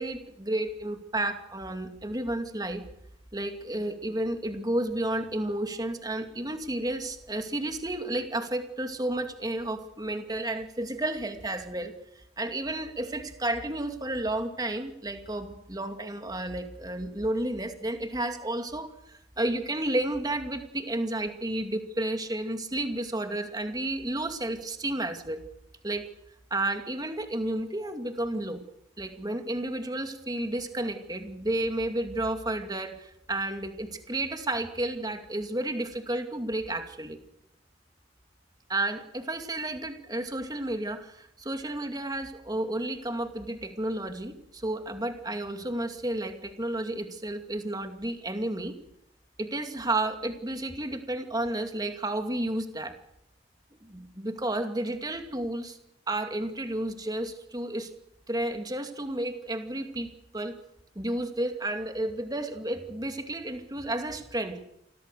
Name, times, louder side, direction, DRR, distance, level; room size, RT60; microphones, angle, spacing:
voice 1, 0.0-2.8 3.3-25.4 25.8-26.1 26.5-28.6 29.0-37.2 38.7-48.7 49.4-52.9 53.8-55.8 56.1-57.9 58.3-60.6 61.0-64.6, right 1 dB, 20° right, 6 dB, 2.4 m, -32 dB
28.0 x 21.5 x 6.7 m, 0.79 s
head